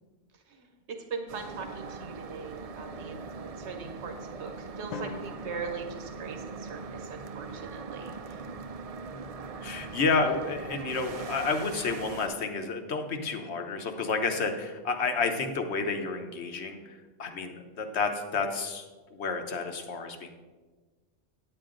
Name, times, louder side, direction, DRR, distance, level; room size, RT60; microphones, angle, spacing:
voice 1, 0.5-8.4, right 5 dB, 85° right, 5 dB, 1.2 m, -41 dB
sound 1, 1.3-12.3, right 4 dB, 50° right, 0.4 m, -41 dB
Drum, 4.9-6.9, left 5 dB, 55° left, 0.5 m, -44 dB
voice 2, 9.6-20.3, left 4 dB, 80° left, 5 dB, 1.2 m, -30 dB
9.6 x 8.8 x 3.8 m, 1.3 s
omnidirectional pair, 1.1 m